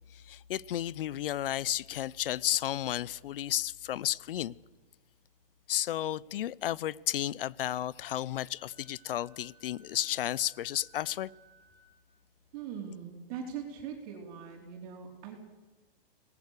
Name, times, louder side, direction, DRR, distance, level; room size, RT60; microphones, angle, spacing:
voice 1, 0.1-4.6 5.7-11.3, left 12 dB, 70° left, 0.8 m, -33 dB
Wind instrument woodwind instrument, 8.5-12.0, right 4 dB, 20° left, 6.3 m, -62 dB
voice 2, 12.5-15.4, right 7 dB, 40° right, 4.3 m, -41 dB
27.0 x 19.5 x 6.7 m
hypercardioid pair, 165°, 29 cm